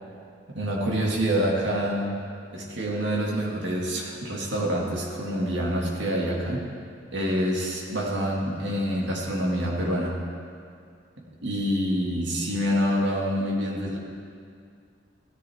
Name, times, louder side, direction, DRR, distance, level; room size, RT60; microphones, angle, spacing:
voice 1, 0.5-2.1 2.5-6.7 7.1-10.2 11.4-14.0, equal, 60° right, -2 dB, 2.3 m, -26 dB
16.0 x 14.0 x 3.6 m, 2.3 s
head